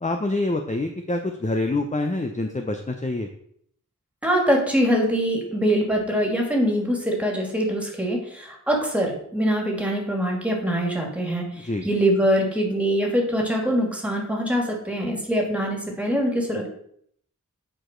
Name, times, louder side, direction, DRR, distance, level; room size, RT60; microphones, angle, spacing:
voice 1, 0.0-3.3 11.6-11.9, left 2 dB, 25° left, 4 dB, 0.7 m, -26 dB
voice 2, 4.2-16.7, equal, 5° right, 0 dB, 2.4 m, -23 dB
8.9 x 4.9 x 4.5 m, 0.67 s
wide cardioid pair, 60°, 31 cm